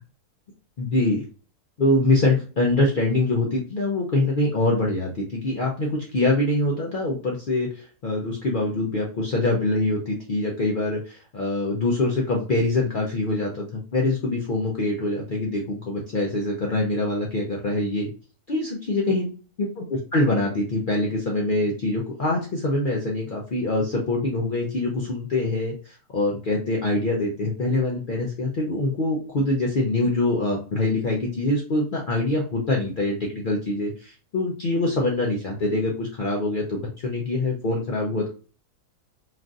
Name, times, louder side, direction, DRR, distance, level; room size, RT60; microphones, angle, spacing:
voice 1, 0.8-1.2 1.8-13.7 13.9-18.1 18.5-19.3 19.6-38.3, left 2 dB, 75° left, -1 dB, 0.4 m, -24 dB
3.2 x 2.5 x 2.4 m, 0.36 s
omnidirectional pair, 1.6 m